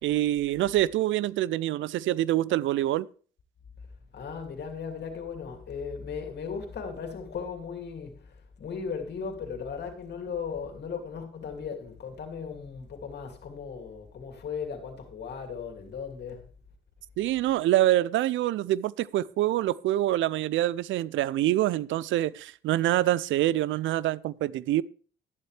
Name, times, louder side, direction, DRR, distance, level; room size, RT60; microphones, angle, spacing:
voice 1, 0.0-3.1 17.2-24.8, right 14 dB, 75° right, 0.4 m, -25 dB
voice 2, 4.1-16.4, left 6 dB, 60° left, 2.6 m, -37 dB
12.0 x 11.0 x 3.3 m
cardioid pair, 90°, 20 cm